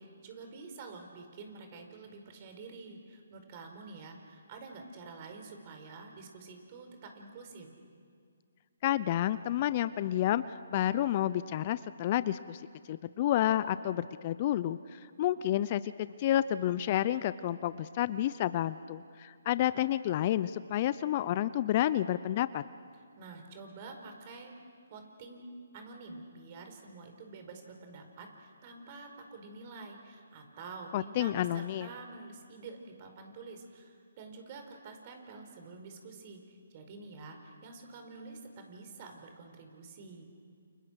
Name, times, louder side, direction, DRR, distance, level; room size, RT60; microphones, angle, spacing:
voice 1, 0.0-7.7 23.2-24.6 24.9-40.2, right 3 dB, 35° right, 5 dB, 4.8 m, -48 dB
voice 2, 8.8-12.6 12.9-15.9 16.2-22.6 30.9-31.9, left 12 dB, 35° left, 15 dB, 0.7 m, -30 dB
29.5 x 29.0 x 6.6 m, 2.2 s
figure-of-eight pair, 145°, 0 cm